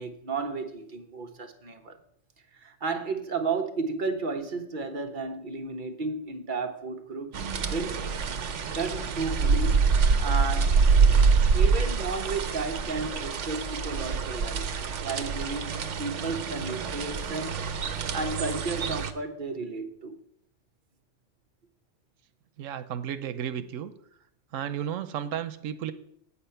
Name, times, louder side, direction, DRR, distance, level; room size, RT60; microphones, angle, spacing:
voice 1, 0.0-2.0 2.6-8.0 8.7-9.8 10.2-10.7 11.5-14.7 15.0-17.6 18.1-20.2, right 4 dB, 40° right, 1.2 m, -33 dB
sound 1, 7.3-19.1, right 5 dB, 70° right, 1.2 m, -25 dB
voice 2, 22.6-23.9 24.5-25.9, right 9 dB, 90° right, 1.0 m, -33 dB
8.5 x 8.5 x 5.6 m
omnidirectional pair, 1.3 m